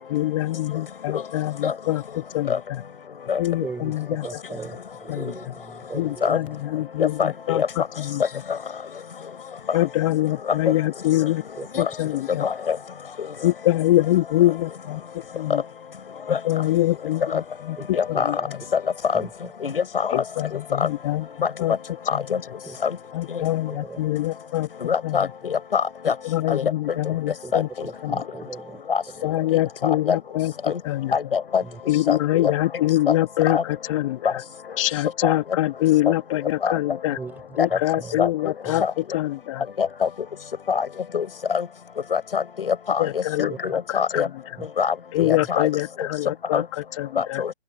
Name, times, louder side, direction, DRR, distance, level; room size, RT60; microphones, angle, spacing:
voice 1, 0.1-2.8 3.4-4.6 5.1-5.5 5.9-8.4 9.7-11.4 11.8-12.5 13.4-15.6 16.3-18.6 20.1-21.3 21.6-21.8 22.1-22.3 23.1-24.7 25.0-25.3 26.2-27.7 28.0-28.2 29.2-31.2 31.9-34.4 34.8-37.2 37.6-39.7 43.0-43.5 43.9-44.3 45.1-47.4, left 15 dB, 30° left, 3.1 m, -24 dB
voice 2, 3.6-3.9 4.2-6.5 11.6-11.8 12.3-12.4 17.8-17.9 18.1-18.5 19.1-19.8 22.6-22.8 23.7-24.0 27.4-27.5 27.8-28.8 31.6-31.8 37.1-37.4 37.7-38.2 38.7-38.8 43.5-43.7 44.6-44.7 45.2-45.4, right 4 dB, 5° right, 6.3 m, -38 dB
voice 3, 7.0-7.7 8.5-8.6 11.7-11.8 12.4-12.8 16.3-16.4 17.3-17.4 17.9-18.4 18.7-18.8 19.1-19.3 19.6-20.2 20.5-20.9 22.1-22.4 22.8-23.0 23.3-23.4 24.8-26.1 26.5-26.6 27.5-27.6 28.9-29.0 29.8-30.2 30.7-30.8 31.1-31.6 32.1-32.5 33.1-33.2 33.5-33.6 34.2-34.3 35.2-35.3 36.6-36.7 37.6-37.7 38.2-38.3 38.8-38.9 39.8-40.1 40.7-40.9 41.1-41.7 42.1-44.3 44.8-45.7 46.5-46.6 47.2-47.5, left 6 dB, 55° left, 5.8 m, -24 dB
figure-of-eight pair, 145°, 34 cm